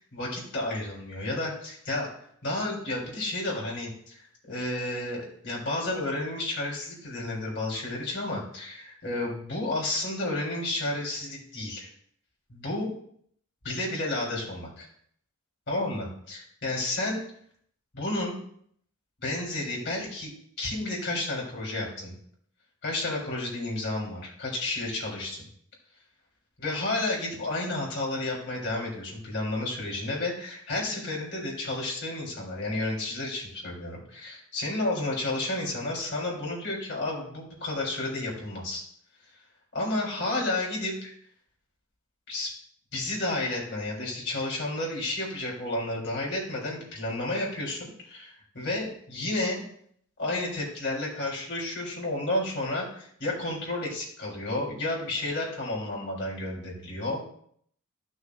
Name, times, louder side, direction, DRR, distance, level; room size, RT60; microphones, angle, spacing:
voice 1, 0.0-2.1 2.4-11.9 12.5-12.9 13.6-14.9 15.7-17.2 17.9-18.4 19.2-22.1 22.8-25.4 26.6-38.8 39.7-41.1 42.3-42.5 42.9-49.6 50.2-57.2, left 2 dB, 55° left, -3 dB, 3.4 m, -31 dB
14.5 x 6.3 x 2.4 m, 0.64 s
head